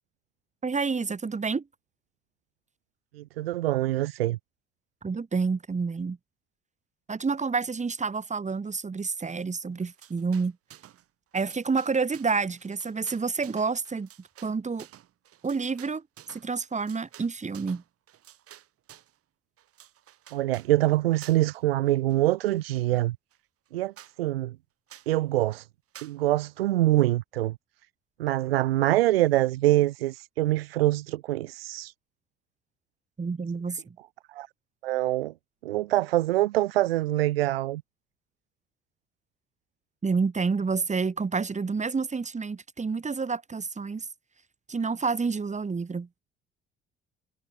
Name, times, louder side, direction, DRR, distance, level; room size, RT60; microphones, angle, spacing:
voice 1, 0.6-1.6 5.0-6.2 7.1-10.6 11.3-14.1 14.4-14.9 15.4-16.0 16.3-17.8 33.2-34.0 40.0-44.1 44.7-46.1, right 4 dB, 25° right, 2.0 m, -29 dB
voice 2, 3.1-4.4 20.3-23.2 23.7-23.9 24.2-24.6 25.1-25.7 26.0-27.6 28.2-31.9 34.3-34.5 34.8-35.3 35.6-37.8, right 16 dB, 80° right, 0.8 m, -25 dB
sound 1, 9.8-11.1 11.3-19.2 19.6-20.7 21.2-21.6 21.9-22.9 23.3-23.4 23.7-23.8 24.0-24.2 24.9-25.2 25.9-26.2, right 12 dB, 50° right, 2.3 m, -52 dB
figure-of-eight pair, 50°, 29 cm